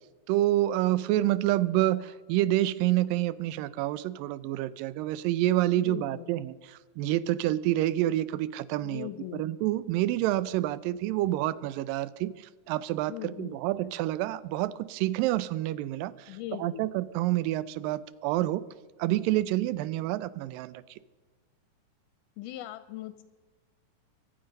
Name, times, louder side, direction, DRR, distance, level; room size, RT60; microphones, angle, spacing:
voice 1, 0.3-18.6 19.0-20.8, right 15 dB, 85° right, 18 dB, 2.3 m, -28 dB
voice 2, 5.8-6.3 8.8-9.4 13.1-13.6 16.3-16.9 22.4-23.2, left 14 dB, 80° left, 12 dB, 2.0 m, -40 dB
23.5 x 7.9 x 5.3 m, 1.3 s
omnidirectional pair, 3.9 m